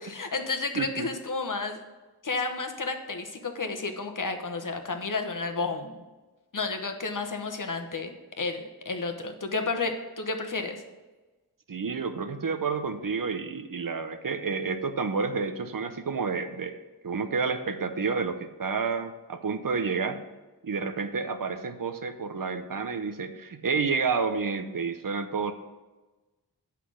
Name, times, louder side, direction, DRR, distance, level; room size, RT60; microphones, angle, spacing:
voice 1, 0.0-1.8 2.2-5.9 6.5-8.1 8.4-10.8, left 3 dB, 50° left, 5 dB, 1.0 m, -31 dB
voice 2, 0.7-1.1 11.7-20.2 20.6-25.5, right 5 dB, 55° right, 9 dB, 0.7 m, -30 dB
8.3 x 5.8 x 6.2 m, 1.2 s
wide cardioid pair, 85°, 39 cm